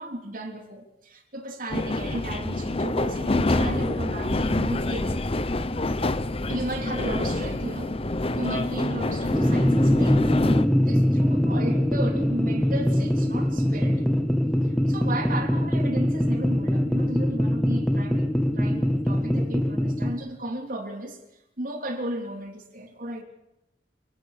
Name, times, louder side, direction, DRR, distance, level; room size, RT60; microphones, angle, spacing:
voice 1, 0.0-5.2 6.5-8.0 8.4-10.3 10.8-14.0 14.7-18.3 18.5-21.2 21.6-23.2, right 1 dB, 50° right, 4 dB, 3.5 m, -34 dB
sound 1, 1.7-10.7, left 2 dB, 35° left, 1.0 m, -27 dB
sound 2, 9.3-20.1, equal, 5° left, 1.8 m, -23 dB
29.0 x 19.0 x 6.8 m, 0.90 s
head